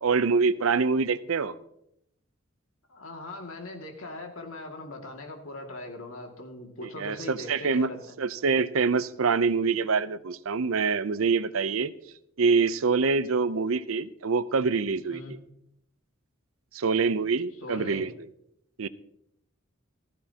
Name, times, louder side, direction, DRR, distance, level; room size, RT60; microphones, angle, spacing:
voice 1, 0.0-1.5 6.8-7.9 8.2-11.9 12.4-15.2 16.7-18.1 18.8-18.9, right 4 dB, 85° right, 15 dB, 0.6 m, -25 dB
voice 2, 2.9-8.1 15.1-15.3 17.6-18.0, left 2 dB, 90° left, 2 dB, 2.2 m, -40 dB
15.5 x 14.5 x 2.9 m, 0.77 s
head